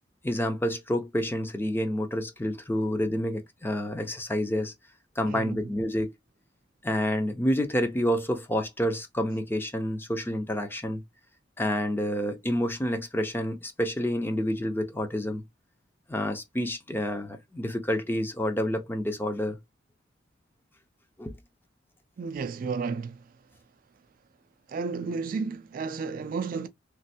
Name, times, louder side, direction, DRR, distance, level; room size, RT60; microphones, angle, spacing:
voice 1, 0.2-4.7 5.2-6.1 6.8-11.0 11.6-15.4 16.1-19.6 21.2-21.4, equal, 10° left, 0.5 m, -28 dB
voice 2, 5.2-5.7 22.2-23.3 24.7-26.7, right 4 dB, 50° right, 0.3 m, -32 dB
3.1 x 2.5 x 2.7 m
head